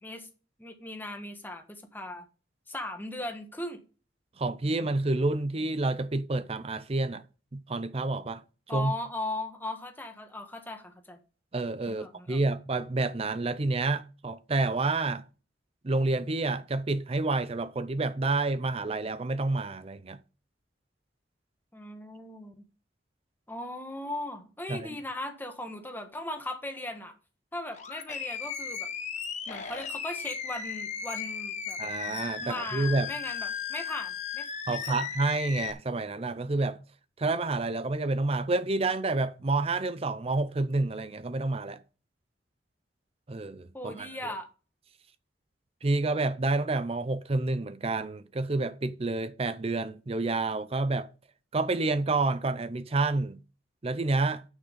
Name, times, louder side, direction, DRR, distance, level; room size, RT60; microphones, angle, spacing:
voice 1, 0.6-2.3 2.7-3.8 8.7-11.2 11.9-12.4 21.7-22.5 23.5-27.1 27.5-28.9 29.5-31.8 32.1-35.0 43.7-44.5, left 1 dB, 10° left, 1.4 m, -38 dB
voice 2, 4.4-7.2 7.5-8.4 8.7-8.9 11.5-15.2 15.8-20.2 24.7-25.0 31.8-33.1 34.7-36.8 37.2-41.8 43.3-44.1 45.8-51.1 51.5-53.4 53.8-54.4, right 2 dB, 35° right, 0.5 m, -29 dB
Animal, 27.7-35.7, left 7 dB, 40° left, 1.2 m, -36 dB
10.0 x 6.4 x 5.1 m
head